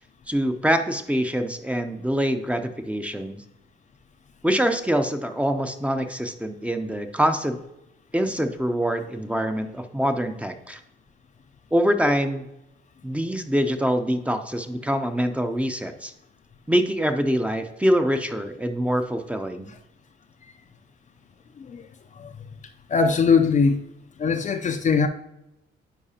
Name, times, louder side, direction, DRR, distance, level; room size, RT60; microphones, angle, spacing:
voice 1, 0.3-3.4 4.4-7.6 8.1-10.8 11.7-12.5 13.0-16.1 16.7-19.7, equal, 5° right, 6 dB, 0.6 m, -24 dB
voice 2, 22.9-23.8 24.2-25.1, left 5 dB, 40° left, 7 dB, 0.5 m, -21 dB
10.0 x 4.6 x 2.8 m, 0.88 s
cardioid pair, 90°, 20 cm